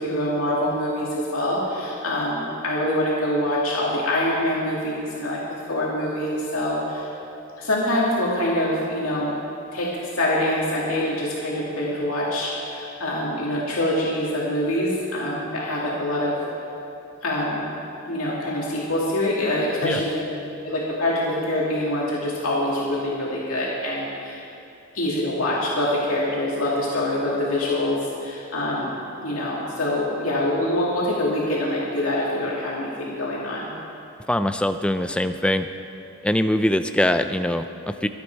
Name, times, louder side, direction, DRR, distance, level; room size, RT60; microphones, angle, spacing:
voice 1, 0.0-5.4 5.7-7.1 7.6-9.3 9.7-16.4 17.2-17.7 18.1-20.1 20.6-24.4 24.9-33.7, left 1 dB, 90° left, -5 dB, 2.3 m, -25 dB
Piano, 19.8-20.8, left 3 dB, 65° left, 0.6 m, -34 dB
voice 2, 34.3-35.7 36.2-38.1, left 1 dB, 5° left, 9 dB, 0.4 m, -22 dB
24.0 x 8.6 x 4.6 m, 2.9 s
head